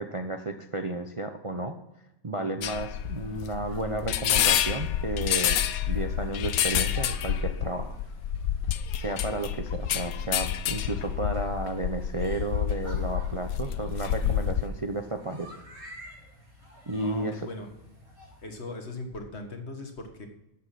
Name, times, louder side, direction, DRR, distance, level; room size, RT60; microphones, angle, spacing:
voice 1, 0.0-1.8 2.2-5.6 5.9-8.0 8.9-15.5 16.9-17.5, right 2 dB, 30° right, 6 dB, 0.7 m, -32 dB
sound 1, 2.6-14.7, left 10 dB, 80° left, 1.1 m, -28 dB
sound 2, 3.3-18.4, left 1 dB, 75° right, 5.5 m, -51 dB
voice 2, 17.0-17.7 18.4-20.3, left 2 dB, 50° left, 4 dB, 1.9 m, -39 dB
13.0 x 8.0 x 5.9 m, 0.91 s
omnidirectional pair, 1.5 m